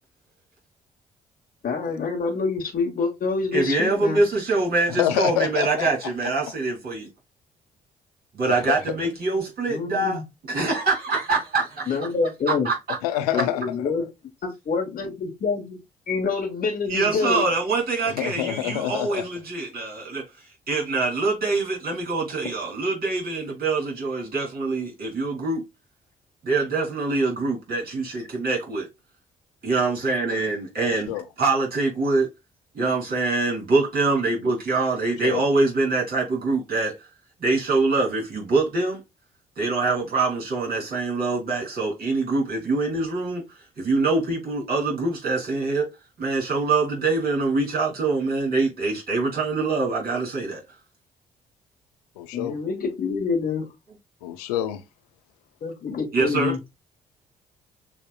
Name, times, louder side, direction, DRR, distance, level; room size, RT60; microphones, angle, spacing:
voice 1, 1.6-4.2 9.7-10.2 11.9-12.7 13.3-14.0 14.7-15.8 16.1-17.4 52.3-53.7 55.6-56.6, left 4 dB, 45° left, 1.2 m, -26 dB
voice 2, 3.5-7.1 8.3-10.2 10.5-11.9 12.6-13.0 16.9-20.2 20.7-25.6 26.4-28.9 29.6-31.1 31.4-32.3 32.7-36.9 37.4-39.0 39.6-43.4 43.8-45.9 46.2-50.6 56.1-56.5, right 3 dB, 50° right, 3.2 m, -24 dB
voice 3, 4.9-5.9 8.5-8.8 13.0-13.6 18.1-19.2 31.1-31.2 35.2-35.4 52.2-52.5 54.2-54.8, left 12 dB, 85° left, 0.5 m, -26 dB
7.0 x 2.7 x 2.3 m
hypercardioid pair, 45°, 20 cm